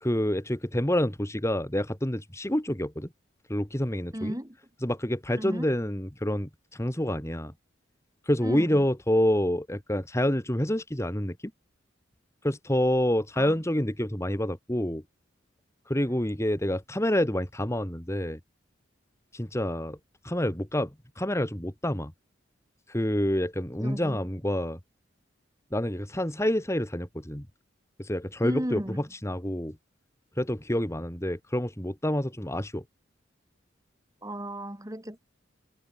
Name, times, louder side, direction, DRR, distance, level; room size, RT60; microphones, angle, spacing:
voice 1, 0.0-3.1 3.5-4.4 4.8-7.5 8.3-11.3 12.4-15.0 15.9-18.4 19.3-20.0 20.2-20.9 21.2-22.1 22.9-24.8 25.7-27.4 28.0-29.8 30.4-32.8, left 1 dB, 15° left, 2.4 m, -27 dB
voice 2, 4.1-4.6 5.4-5.7 8.4-8.9 13.4-13.6 16.1-16.2 23.8-24.2 28.4-29.0 34.2-35.2, equal, 20° right, 3.8 m, -34 dB
head